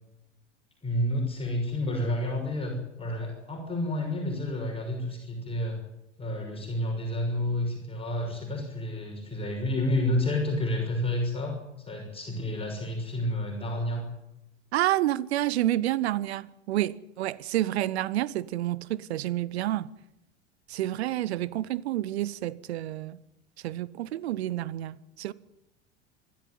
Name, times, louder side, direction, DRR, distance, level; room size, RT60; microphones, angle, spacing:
voice 1, 0.8-5.8 6.2-11.6 11.9-14.0, left 1 dB, 15° left, 6.2 m, -30 dB
voice 2, 14.7-19.9 20.7-23.2 23.6-25.3, right 14 dB, 65° right, 0.9 m, -29 dB
25.5 x 13.0 x 9.4 m
figure-of-eight pair, 75°, 35 cm